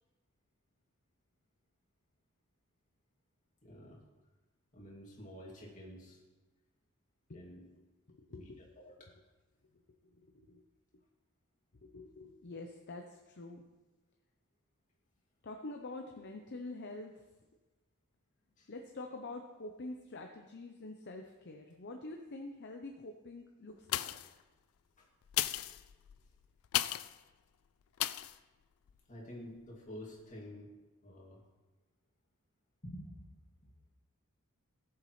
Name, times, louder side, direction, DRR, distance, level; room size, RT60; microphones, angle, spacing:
voice 1, 3.6-4.0 4.7-6.2 7.3-7.6 8.3-9.1 18.6-18.7 25.0-25.1 29.1-30.7 31.0-31.4 32.8-33.3, equal, 35° left, -3 dB, 2.5 m, -49 dB
voice 2, 8.1-8.6 9.7-10.6 11.7-13.6 15.4-17.3 18.7-24.4, left 2 dB, 50° left, 3 dB, 0.7 m, -47 dB
sound 1, 23.8-24.4 25.2-27.2 28.0-28.4 28.9-29.0, left 14 dB, 75° left, 0.4 m, -35 dB
17.0 x 7.3 x 3.2 m, 1.2 s
head